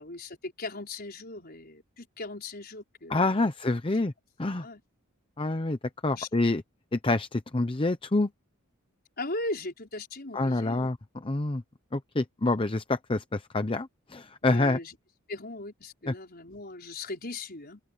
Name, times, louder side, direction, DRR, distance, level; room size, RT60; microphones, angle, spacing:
voice 1, 0.0-3.5 4.6-4.8 6.1-6.3 9.2-10.9 14.4-14.9 15.3-17.8, left 2 dB, 45° left, 5.5 m, -38 dB
voice 2, 3.1-4.1 4.4-4.7 5.4-6.6 6.9-8.3 10.3-11.0 11.2-11.6 11.9-14.8 16.1-16.2, left 2 dB, 25° left, 0.7 m, -27 dB
open air
head